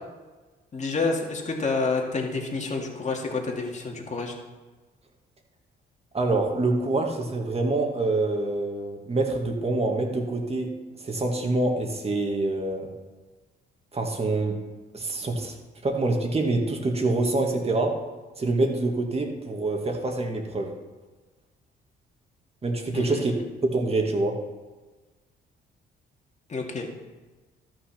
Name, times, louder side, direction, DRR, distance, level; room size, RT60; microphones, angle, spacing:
voice 1, 0.7-4.4 22.9-23.2 26.5-26.9, left 3 dB, 35° left, 1 dB, 2.2 m, -28 dB
voice 2, 6.1-12.9 13.9-14.6 14.9-15.5 15.8-18.0 18.4-20.7 22.6-23.3 23.6-24.4, right 2 dB, 30° right, 2 dB, 2.0 m, -26 dB
13.0 x 6.2 x 5.9 m, 1.3 s
cardioid pair, 90°, 20 cm